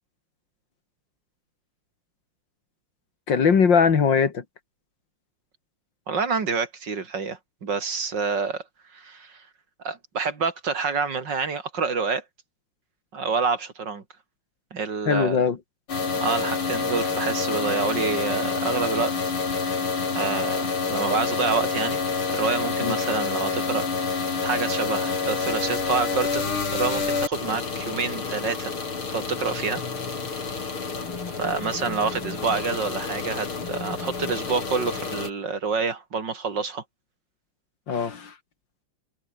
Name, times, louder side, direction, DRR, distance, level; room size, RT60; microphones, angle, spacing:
voice 1, 3.3-4.4 15.1-15.6 22.8-23.0 37.9-38.3, left 6 dB, 60° left, 2.7 m, -20 dB
voice 2, 6.1-8.6 8.9-9.3 9.8-12.2 13.1-14.0 14.7-15.4 16.2-19.1 20.1-22.0 22.3-23.8 24.4-28.7 29.1-29.8 31.4-36.8, right 5 dB, 60° right, 3.2 m, -27 dB
sound 1, 15.9-35.3, left 4 dB, 90° left, 4.5 m, -28 dB
omnidirectional pair, 2.3 m